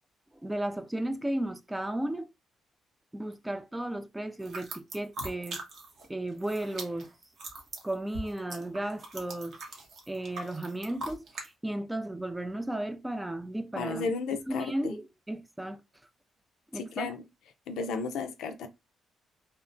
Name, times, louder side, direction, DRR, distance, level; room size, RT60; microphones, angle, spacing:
voice 1, 0.4-2.3 3.1-5.6 6.1-7.1 7.8-9.6 10.1-14.1 14.5-15.8 16.7-17.1, right 1 dB, 10° right, 0.3 m, -34 dB
sound 1, 4.4-6.1 6.3-11.5, right 2 dB, 60° right, 0.8 m, -41 dB
voice 2, 13.8-15.0 16.7-17.2 17.7-18.7, left 4 dB, 80° left, 0.4 m, -34 dB
2.8 x 2.1 x 2.5 m
cardioid pair, 90°, 0 cm